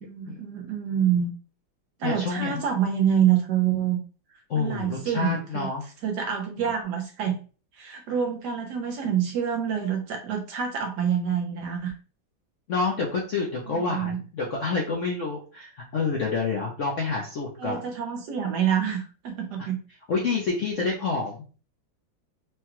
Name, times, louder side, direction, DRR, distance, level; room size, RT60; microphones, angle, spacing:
voice 1, 0.0-1.3 2.0-4.0 4.6-5.7 6.0-7.4 7.8-11.9 13.7-14.2 17.6-19.8, right 8 dB, 65° right, 2 dB, 1.1 m, -26 dB
voice 2, 2.0-2.6 4.5-5.8 12.7-17.8 19.6-19.7 20.1-21.4, left 4 dB, 60° left, -2 dB, 0.8 m, -28 dB
4.7 x 2.3 x 3.0 m, 0.37 s
omnidirectional pair, 2.2 m